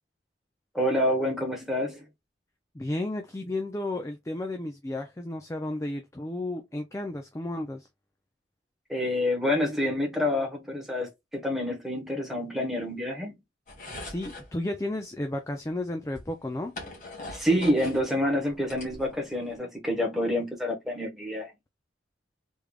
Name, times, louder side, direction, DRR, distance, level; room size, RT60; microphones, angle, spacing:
voice 1, 0.7-2.0 8.9-13.4 17.3-21.5, left 1 dB, ahead, 1.1 m, -27 dB
voice 2, 2.7-7.9 14.0-16.8, left 1 dB, 15° left, 0.4 m, -33 dB
sound 1, 13.7-14.5 15.6-15.7 16.1-18.0 18.4-19.5, left 2 dB, 45° left, 1.6 m, -41 dB
3.5 x 3.2 x 2.3 m
head